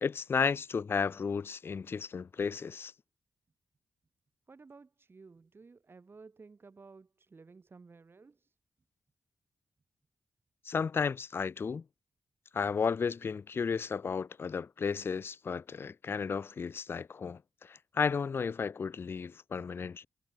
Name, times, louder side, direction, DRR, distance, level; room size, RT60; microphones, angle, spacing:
voice 1, 0.0-2.9 10.7-11.8 12.5-20.1, left 5 dB, 40° left, 0.4 m, -33 dB
voice 2, 4.5-8.6, right 4 dB, 40° right, 6.9 m, -55 dB
cardioid pair, 75°, 6 cm